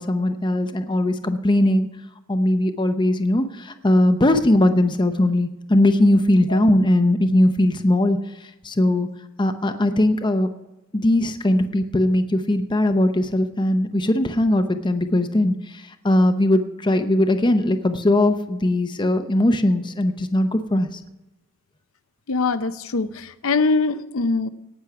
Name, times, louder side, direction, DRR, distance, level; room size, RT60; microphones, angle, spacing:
voice 1, 0.0-1.9 2.3-9.1 9.4-10.5 10.9-21.0, left 1 dB, 20° left, 7 dB, 0.7 m, -20 dB
voice 2, 22.3-24.5, left 3 dB, 75° left, 13 dB, 0.7 m, -22 dB
18.0 x 6.3 x 5.8 m, 0.99 s
head